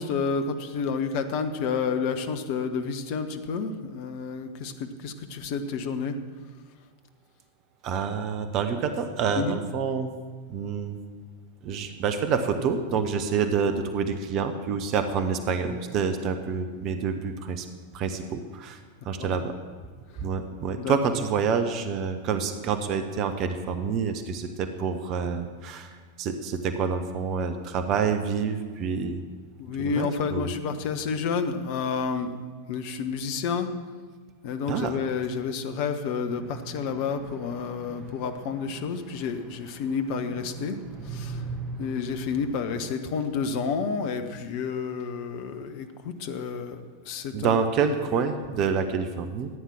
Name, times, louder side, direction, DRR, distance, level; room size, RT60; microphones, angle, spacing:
voice 1, 0.0-6.2 9.4-9.6 20.8-21.0 29.6-32.4 32.7-33.7 34.4-40.8 41.0-41.4 41.8-47.6, left 5 dB, 45° left, 8 dB, 1.2 m, -30 dB
voice 2, 7.8-10.1 10.5-11.0 11.6-17.7 17.9-18.8 19.0-19.5 20.2-29.2 29.8-30.5 34.7-35.0 47.3-49.5, right 6 dB, 35° right, 8 dB, 1.1 m, -27 dB
sound 1, 36.3-42.9, right 3 dB, 20° right, 1.6 m, -41 dB
14.0 x 9.4 x 7.3 m, 1.5 s
figure-of-eight pair, 90°, 0 cm